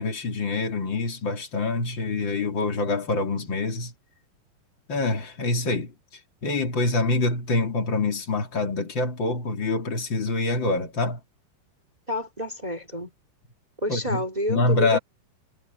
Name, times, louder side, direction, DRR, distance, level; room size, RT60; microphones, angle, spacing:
voice 1, 0.0-3.9 4.9-5.9 6.4-11.2 13.9-14.2 14.5-15.0, left 3 dB, 30° left, 2.7 m, -25 dB
voice 2, 12.1-13.1 13.8-15.0, left 1 dB, 25° right, 0.9 m, -29 dB
omnidirectional pair, 5.5 m